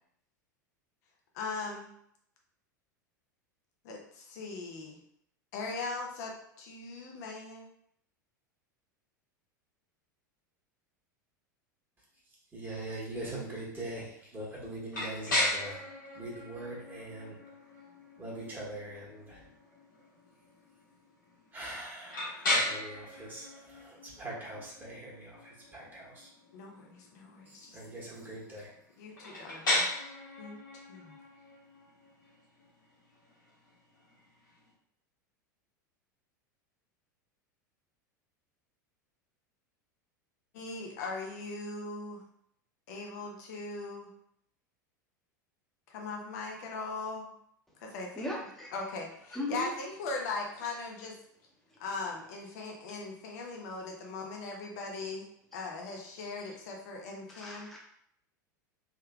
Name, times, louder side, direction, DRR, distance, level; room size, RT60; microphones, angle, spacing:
voice 1, 1.3-1.9 3.8-5.0 5.5-7.7 26.5-27.8 29.0-29.9 30.4-31.2 40.5-42.2 42.9-44.1 45.9-47.3 47.8-48.3 48.7-51.2 51.8-55.3 55.5-57.7, left 3 dB, 60° left, 0 dB, 0.7 m, -39 dB
voice 2, 12.5-15.8 16.1-17.4 18.2-19.4 21.5-26.3 27.5-28.7, right 1 dB, 20° right, -5 dB, 1.5 m, -42 dB
sound 1, 14.9-34.7, left 1 dB, 80° left, 1.5 m, -37 dB
voice 3, 48.2-48.7 49.3-49.7 57.3-57.8, left 1 dB, 5° left, -4 dB, 1.1 m, -37 dB
3.6 x 3.2 x 2.3 m, 0.70 s
figure-of-eight pair, 85°, 10 cm